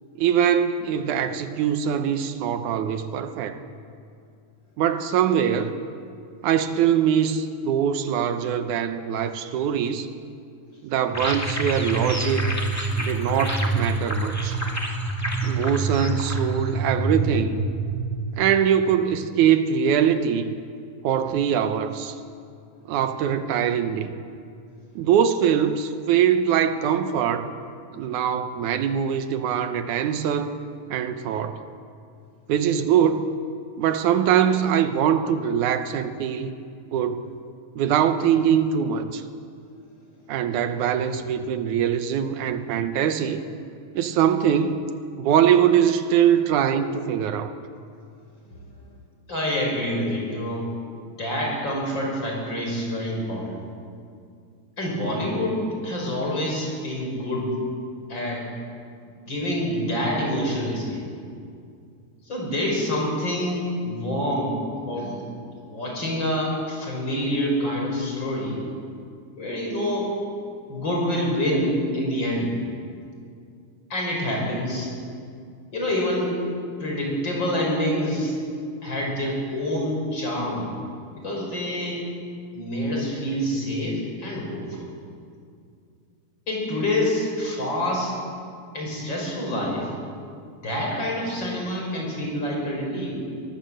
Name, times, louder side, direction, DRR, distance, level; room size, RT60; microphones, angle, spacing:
voice 1, 0.2-3.6 4.8-5.7 6.4-10.1 10.8-12.5 13.0-14.6 15.4-17.6 18.4-20.5 21.0-22.2 22.9-24.1 25.0-27.5 27.9-30.6 30.9-31.6 32.5-33.3 33.8-36.5 36.9-37.3 37.8-39.2 40.3-43.4 43.9-44.9 45.2-47.5, right 8 dB, 85° right, 9 dB, 2.4 m, -22 dB
sound 1, 11.1-18.3, right 2 dB, 5° left, 1.7 m, -26 dB
voice 2, 49.3-50.7 51.0-53.6 54.8-57.5 58.1-58.4 59.3-61.0 62.3-65.2 65.6-68.6 69.4-70.1 70.7-72.5 73.9-74.9 75.7-76.3 76.8-78.4 78.8-80.7 81.2-82.0 82.5-84.9 86.5-88.1 88.7-89.9 90.6-93.2, left 1 dB, 35° left, -1 dB, 6.2 m, -27 dB
23.0 x 19.0 x 7.8 m, 2.3 s
omnidirectional pair, 3.4 m